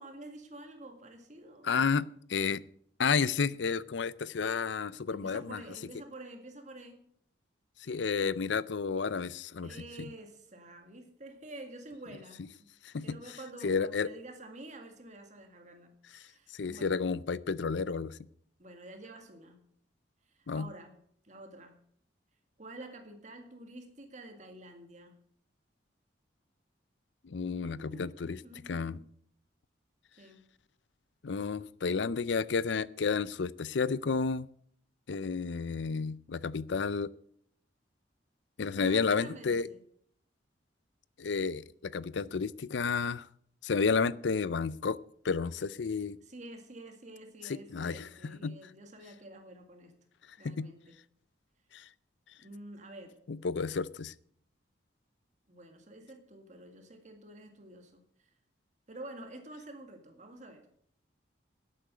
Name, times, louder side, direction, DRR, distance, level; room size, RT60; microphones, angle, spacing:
voice 1, 0.0-1.7 5.1-7.1 8.2-8.3 9.6-12.7 13.0-17.0 18.6-19.6 20.3-20.9 21.2-21.8 22.6-25.2 27.7-29.0 30.2-30.4 38.6-39.8 46.2-49.9 50.4-51.0 52.4-53.2 55.5-58.3 58.9-60.7, right 1 dB, 40° right, 5 dB, 2.0 m, -49 dB
voice 2, 1.6-2.6 3.0-5.6 7.8-10.1 12.8-13.2 13.6-14.1 16.5-18.2 20.5-20.7 27.2-29.0 31.2-34.5 35.1-37.1 38.6-39.7 41.2-43.3 43.6-45.0 45.2-46.2 47.5-48.5 50.4-50.7 51.7-51.9 53.3-54.1, left 5 dB, 75° left, 19 dB, 0.5 m, -31 dB
11.5 x 8.7 x 7.7 m, 0.65 s
head